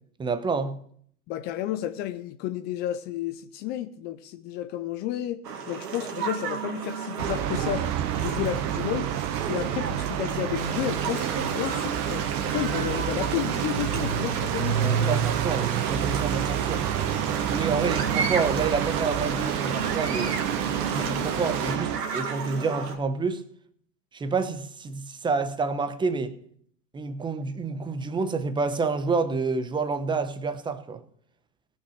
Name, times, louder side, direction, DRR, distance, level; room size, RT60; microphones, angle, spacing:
voice 1, 0.2-0.8 14.8-16.9 17.4-20.4 20.9-23.4 24.1-26.4 26.9-31.0, right 4 dB, 10° right, 0.8 m, -28 dB
voice 2, 1.3-5.4 5.7-7.9 8.2-9.1 9.5-15.2, left 12 dB, 25° left, 0.4 m, -32 dB
seashore tunisia - beach atmo, 5.4-23.0, right 6 dB, 75° right, 2.2 m, -34 dB
sound 1, 7.2-22.0, right 10 dB, 35° right, 1.0 m, -29 dB
Stream, 10.5-21.8, right 7 dB, 60° right, 2.0 m, -34 dB
18.0 x 6.2 x 6.3 m
hypercardioid pair, 110°, 49 cm